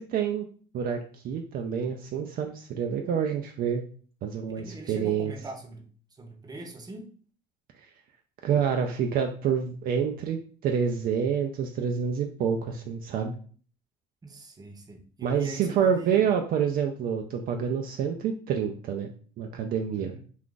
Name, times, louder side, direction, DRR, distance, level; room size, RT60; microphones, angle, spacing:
voice 1, 0.1-0.5 0.7-3.8 4.2-5.3 8.4-13.3 15.2-19.1 19.4-20.1, right 7 dB, 60° right, 3 dB, 0.4 m, -27 dB
voice 2, 4.6-5.9 6.2-7.1 14.2-16.2 20.0-20.2, right 2 dB, 20° right, 3 dB, 0.8 m, -42 dB
2.4 x 2.4 x 3.7 m, 0.43 s
supercardioid pair, 80°, 17 cm